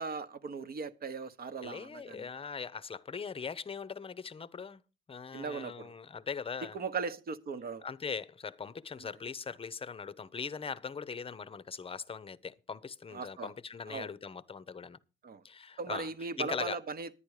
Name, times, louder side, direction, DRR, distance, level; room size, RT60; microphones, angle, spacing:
voice 1, 0.0-2.3 5.3-5.9 6.7-7.8 13.1-13.5 13.9-14.1 15.2-15.4 15.8-17.1, right 4 dB, 50° right, 1.0 m, -38 dB
voice 2, 1.6-4.8 5.1-6.8 7.8-15.0 15.4-16.1 16.4-16.8, left 5 dB, 30° left, 0.7 m, -40 dB
10.5 x 9.9 x 4.8 m
cardioid pair, 90°, 20 cm